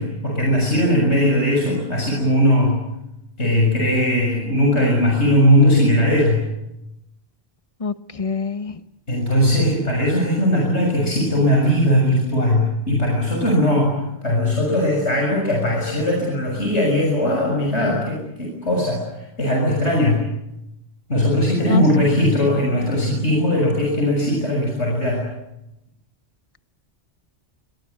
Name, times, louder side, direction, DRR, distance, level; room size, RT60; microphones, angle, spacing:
voice 1, 0.0-2.8 3.4-6.4 9.1-13.9 14.2-19.0 19.4-20.2 21.1-25.2, left 1 dB, 85° left, -1 dB, 7.2 m, -19 dB
voice 2, 7.8-8.8 21.7-21.8, left 5 dB, 30° left, 11 dB, 1.2 m, -26 dB
28.5 x 23.0 x 8.4 m, 0.87 s
omnidirectional pair, 1.1 m